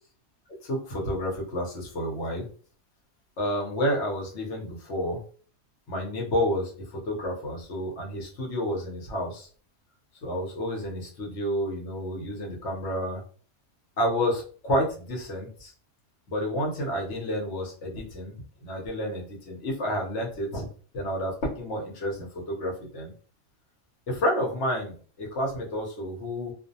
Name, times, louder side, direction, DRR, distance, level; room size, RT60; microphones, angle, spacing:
voice 1, 0.6-2.5 3.4-5.2 5.9-9.5 10.2-13.2 14.0-15.7 16.3-18.3 18.6-20.7 20.9-23.1 24.1-26.5, equal, 60° left, -1 dB, 1.0 m, -30 dB
2.5 x 2.0 x 2.6 m, 0.43 s
omnidirectional pair, 1.5 m